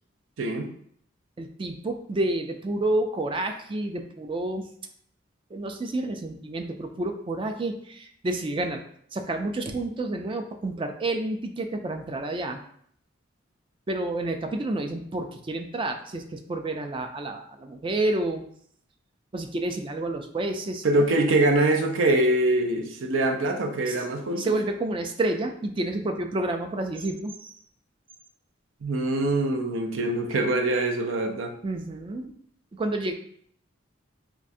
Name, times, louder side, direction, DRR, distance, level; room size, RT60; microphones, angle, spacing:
voice 1, 0.4-0.7 20.8-24.6 28.8-31.5, right 2 dB, 80° right, 3 dB, 0.5 m, -24 dB
voice 2, 1.4-4.7 5.5-8.8 9.1-12.6 13.9-18.4 19.3-21.1 23.9-24.1 24.4-27.6 31.6-32.3 32.7-33.1, right 2 dB, 25° right, 5 dB, 0.3 m, -29 dB
4.5 x 2.4 x 2.6 m, 0.64 s
head